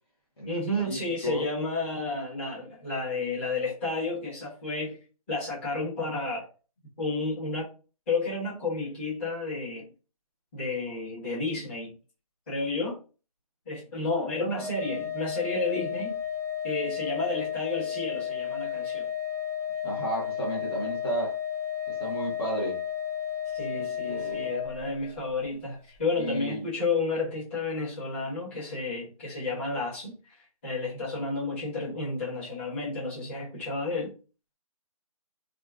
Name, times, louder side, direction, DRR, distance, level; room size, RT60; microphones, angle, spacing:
voice 1, 0.4-5.0 5.3-6.5 7.0-7.7 8.1-9.9 10.5-11.9 12.5-13.0 13.6-16.2 16.6-19.1 23.5-34.1, left 3 dB, 20° left, 1.3 m, -31 dB
Organ, 14.6-25.3, left 9 dB, 85° left, 1.2 m, -33 dB
voice 2, 19.8-21.4 21.9-22.8 23.7-24.5 26.2-26.7, right 1 dB, 40° left, 1.1 m, -33 dB
2.9 x 2.5 x 2.4 m
figure-of-eight pair, 160°, 19 cm